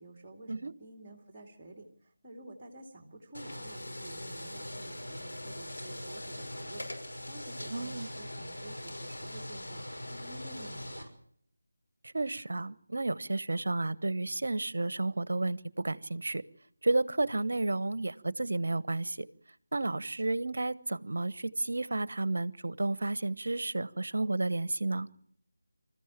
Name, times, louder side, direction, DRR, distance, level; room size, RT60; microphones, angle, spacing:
voice 1, 0.0-11.1, right 1 dB, 10° right, 3 dB, 2.5 m, -50 dB
sound 1, 3.3-11.0, left 1 dB, 70° left, 5.9 m, -41 dB
voice 2, 7.7-8.1 12.1-16.4 16.8-19.3 19.7-25.1, right 2 dB, 55° right, 19 dB, 1.0 m, -32 dB
26.5 x 14.5 x 8.9 m, 0.66 s
figure-of-eight pair, 165°, 0 cm